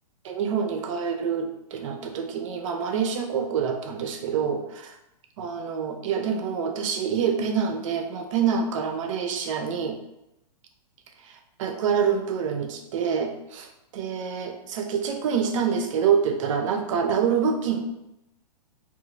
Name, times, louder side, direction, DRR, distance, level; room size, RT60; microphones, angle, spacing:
voice 1, 0.2-5.0 5.4-10.0 11.2-17.8, right 7 dB, 50° right, 5 dB, 0.5 m, -26 dB
2.9 x 2.4 x 2.5 m, 0.86 s
hypercardioid pair, 140°, 21 cm